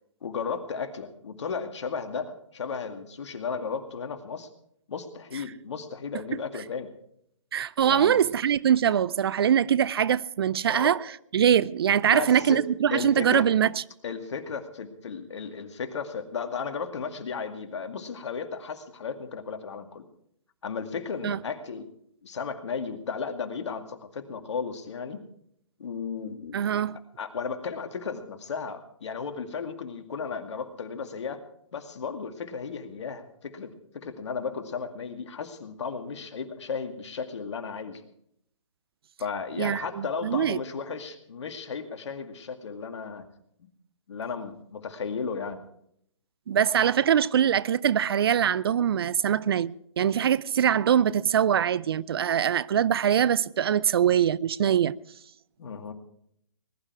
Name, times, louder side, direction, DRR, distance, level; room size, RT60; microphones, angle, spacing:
voice 1, 0.2-4.5 4.9-6.9 7.8-8.2 10.7-10.9 12.0-12.6 12.9-13.5 14.0-20.1 20.6-21.9 22.2-25.2 25.8-26.6 26.9-31.4 31.7-38.1 39.2-43.2 43.6-43.7 44.1-45.6 55.6-55.9, left 5 dB, 60° left, 2.2 m, -34 dB
voice 2, 7.5-11.0 11.3-13.7 21.2-21.4 26.5-27.0 39.6-40.6 46.5-54.9, right 9 dB, 50° right, 0.5 m, -23 dB
20.5 x 12.0 x 4.7 m
hypercardioid pair, 145°, 17 cm